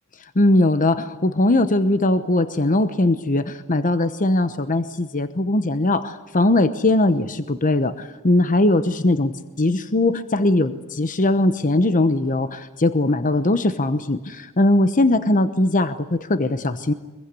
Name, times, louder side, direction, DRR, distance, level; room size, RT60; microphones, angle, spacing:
voice 1, 0.3-16.9, left 2 dB, 35° left, 11 dB, 1.0 m, -20 dB
24.5 x 22.0 x 9.8 m, 1.2 s
head